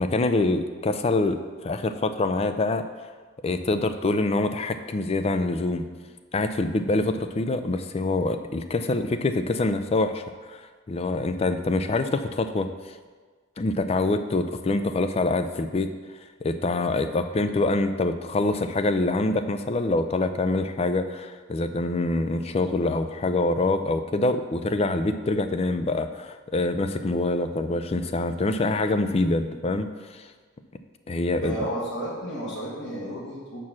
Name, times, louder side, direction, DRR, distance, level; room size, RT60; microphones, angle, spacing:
voice 1, 0.0-2.9 3.4-5.8 6.3-12.7 13.6-15.9 16.4-30.3 31.1-31.5, left 2 dB, 30° left, 9 dB, 0.4 m, -25 dB
voice 2, 31.4-33.6, equal, 60° left, -6 dB, 1.8 m, -32 dB
7.2 x 4.6 x 6.2 m, 1.4 s
head